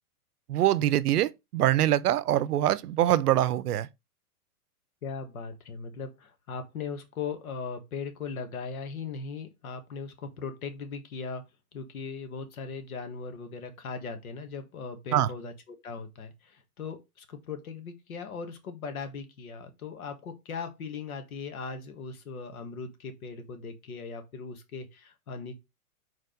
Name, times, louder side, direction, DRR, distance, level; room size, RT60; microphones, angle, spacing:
voice 1, 0.5-3.9 15.1-15.3, right 13 dB, 85° right, 0.7 m, -24 dB
voice 2, 5.0-11.4 11.7-25.6, left 5 dB, 70° left, 1.7 m, -39 dB
4.7 x 4.4 x 5.1 m
supercardioid pair, 175°, 45 cm